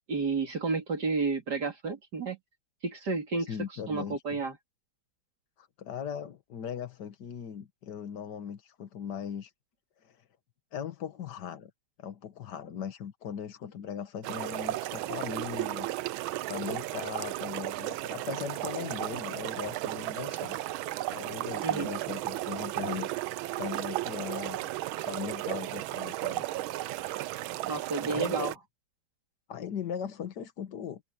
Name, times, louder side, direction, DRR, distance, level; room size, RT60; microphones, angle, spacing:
voice 1, 0.1-2.4 2.8-3.5 3.9-4.6 21.6-21.9 27.6-28.5, right 4 dB, 50° right, 3.2 m, -31 dB
voice 2, 3.5-4.4 5.6-9.5 10.0-10.1 10.7-11.7 12.0-16.2 16.5-20.6 21.1-24.7 25.1-26.5 28.0-28.5 29.5-31.0, left 8 dB, 55° left, 1.8 m, -39 dB
sound 1, 14.2-28.6, right 16 dB, 75° right, 1.4 m, -34 dB
omnidirectional pair, 2.4 m